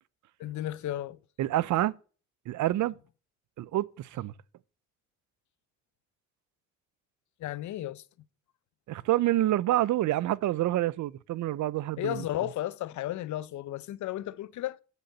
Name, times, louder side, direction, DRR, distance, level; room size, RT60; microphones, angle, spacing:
voice 1, 0.4-1.2 7.4-8.0 12.0-14.8, left 13 dB, 70° left, 0.7 m, -34 dB
voice 2, 1.4-2.0 2.5-2.9 3.6-4.3 8.9-12.2, right 14 dB, 75° right, 0.7 m, -27 dB
8.4 x 6.9 x 7.9 m
cardioid pair, 90°, 30 cm